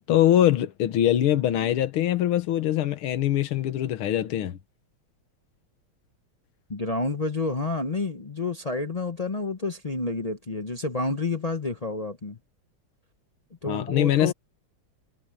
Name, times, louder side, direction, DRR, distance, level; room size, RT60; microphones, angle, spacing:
voice 1, 0.0-4.6 13.7-14.3, left 12 dB, 85° left, 2.0 m, -23 dB
voice 2, 6.7-12.4 13.6-14.3, left 3 dB, 65° left, 0.3 m, -29 dB
omnidirectional pair, 2.3 m